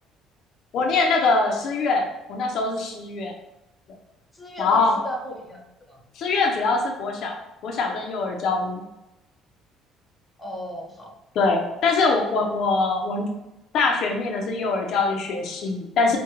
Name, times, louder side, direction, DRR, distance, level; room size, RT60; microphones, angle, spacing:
voice 1, 0.7-3.3 4.6-5.0 6.2-8.8 11.4-13.3 13.7-16.2, left 3 dB, 60° left, 2 dB, 0.6 m, -23 dB
voice 2, 4.3-5.6 5.9-6.0 10.4-11.1, equal, 10° left, -1 dB, 0.7 m, -35 dB
4.7 x 2.2 x 2.9 m, 0.95 s
cardioid pair, 130°, 0 cm